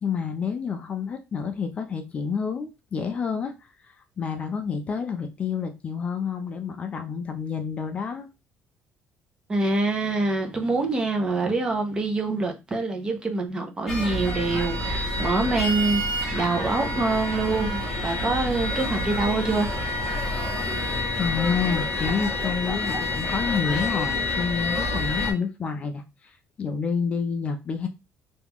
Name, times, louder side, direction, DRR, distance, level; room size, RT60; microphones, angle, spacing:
voice 1, 0.0-3.5 3.9-8.3 21.2-27.9, left 6 dB, 30° left, 0.4 m, -29 dB
voice 2, 9.5-16.0 16.3-19.8, right 3 dB, 20° right, 0.6 m, -25 dB
sound 1, 13.9-25.3, left 2 dB, 10° left, 0.8 m, -28 dB
3.0 x 2.3 x 3.5 m
cardioid pair, 165°, 4 cm